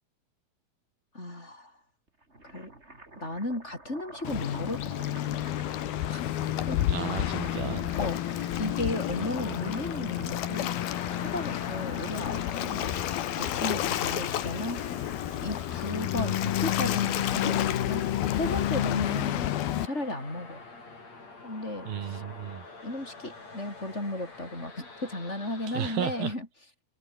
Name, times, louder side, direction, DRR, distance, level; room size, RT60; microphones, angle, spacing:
voice 1, 1.1-1.7 2.4-2.7 3.2-4.9 5.2-5.4 6.1-6.2 6.7-6.8 7.9-10.8 11.2-14.8 15.4-19.5 19.8-20.6 21.4-22.2 22.8-26.5, left 1 dB, 15° left, 7.9 m, -35 dB
sound 1, 2.1-16.0, right 2 dB, 15° right, 5.2 m, -51 dB
Waves surf, 4.2-19.9, left 12 dB, 80° left, 3.4 m, -30 dB
voice 2, 6.9-7.9 21.9-22.6 25.7-26.3, right 9 dB, 75° right, 4.1 m, -33 dB
sound 2, 7.5-26.4, left 3 dB, 45° left, 8.6 m, -46 dB
omnidirectional pair, 4.4 m